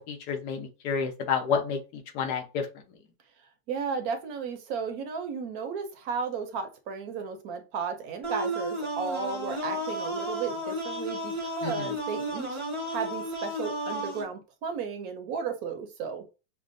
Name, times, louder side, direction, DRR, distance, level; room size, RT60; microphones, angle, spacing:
voice 1, 0.1-1.8 2.1-2.7 11.6-11.7, left 6 dB, 75° left, 4 dB, 1.3 m, -29 dB
voice 2, 3.7-12.6 12.9-16.2, right 5 dB, 70° right, 7 dB, 1.0 m, -34 dB
sound 1, 8.2-14.2, equal, 40° right, 0.4 m, -33 dB
5.8 x 2.1 x 2.5 m, 0.30 s
omnidirectional pair, 1.8 m